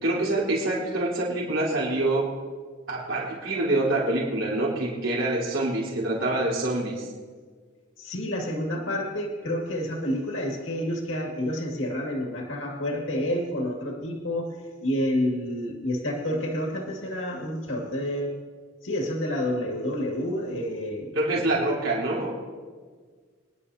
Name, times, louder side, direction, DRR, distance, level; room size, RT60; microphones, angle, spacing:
voice 1, 0.0-2.2 2.9-7.1 21.2-22.3, right 2 dB, 80° right, -5 dB, 3.8 m, -26 dB
voice 2, 8.0-14.6 14.8-18.3 18.8-21.6, left 1 dB, 70° left, 0 dB, 2.1 m, -29 dB
25.5 x 10.5 x 2.8 m, 1.5 s
head